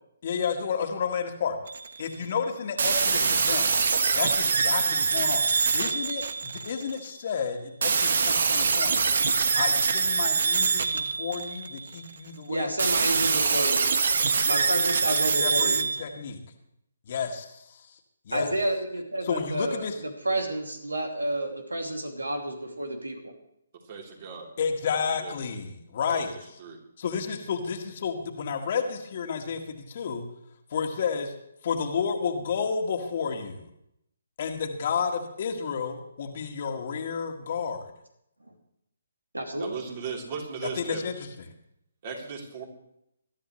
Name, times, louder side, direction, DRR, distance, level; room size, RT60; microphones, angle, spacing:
voice 1, 0.2-1.6 2.0-3.7 4.1-5.4 5.7-9.0 9.6-12.7 15.4-16.4 17.1-17.8 18.3-18.5 19.2-19.9 24.6-26.3 27.0-30.2 30.7-31.3 31.6-33.7 34.4-37.9 40.8-41.5, left 6 dB, 45° left, 3 dB, 2.0 m, -31 dB
sound 1, 1.7-2.1 2.8-7.0 7.8-11.9 12.8-16.0, right 5 dB, 60° right, 1.2 m, -24 dB
voice 2, 12.5-13.9 14.5-15.8 18.3-23.3 39.3-39.7, right 1 dB, 85° right, 4 dB, 2.6 m, -30 dB
voice 3, 23.9-24.5 25.1-25.3 26.0-26.2 26.6-26.8 39.6-41.1 42.0-42.7, right 5 dB, 40° right, 0 dB, 3.7 m, -37 dB
21.5 x 12.5 x 3.2 m, 0.77 s
figure-of-eight pair, 140°, 0 cm